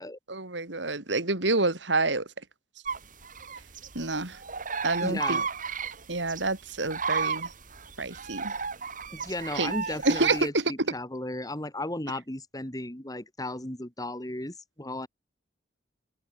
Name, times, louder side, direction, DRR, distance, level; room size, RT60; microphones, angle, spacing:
voice 1, 0.3-2.3 3.9-4.4 4.8-5.4 6.1-7.5 8.0-8.5 9.5-9.7 10.0-10.6, right 3 dB, 80° right, 3.4 m, -28 dB
sound 1, 2.9-10.4, right 5 dB, 50° right, 3.7 m, -33 dB
voice 2, 5.0-5.5 9.1-15.1, left 1 dB, 20° left, 3.1 m, -35 dB
open air
head